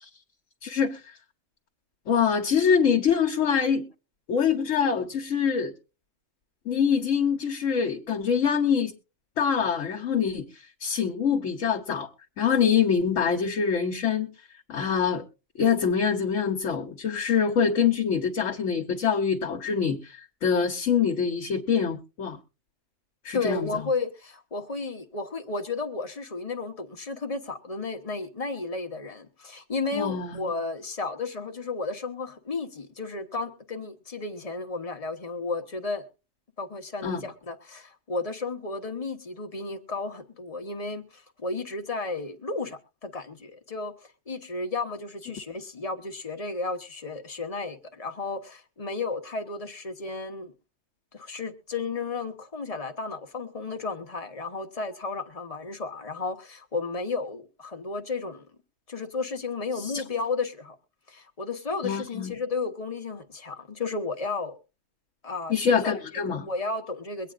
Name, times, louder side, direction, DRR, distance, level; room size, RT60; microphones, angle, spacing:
voice 1, 0.6-1.0 2.1-3.9 4.3-5.7 6.6-8.9 9.4-10.4 10.8-12.1 12.4-14.3 14.7-15.2 15.6-22.4 23.2-23.7 29.9-30.5 37.0-37.3 59.8-60.0 61.8-62.4 65.5-66.5, left 7 dB, 75° left, 1.3 m, -25 dB
voice 2, 23.3-36.0 36.6-43.9 44.3-50.5 51.1-58.5 58.9-60.8 61.1-64.6 65.2-66.0 66.3-67.3, left 3 dB, 30° left, 1.0 m, -33 dB
23.0 x 9.0 x 2.5 m
omnidirectional pair, 1.3 m